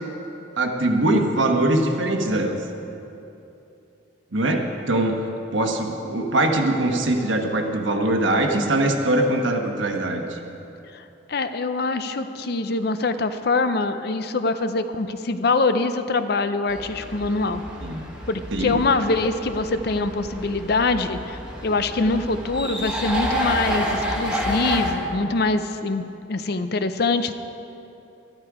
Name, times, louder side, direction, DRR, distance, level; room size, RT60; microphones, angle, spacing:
voice 1, 0.6-2.6 4.3-4.6 4.9-5.1 5.5-10.4 17.8-18.0 18.5-18.8, right 1 dB, 75° right, 3 dB, 1.3 m, -22 dB
voice 2, 11.3-17.6 18.3-27.3, left 3 dB, 55° left, 10 dB, 0.5 m, -24 dB
sound 1, 16.7-24.9, equal, 5° right, 1.4 m, -29 dB
13.0 x 12.0 x 4.9 m, 2.9 s
head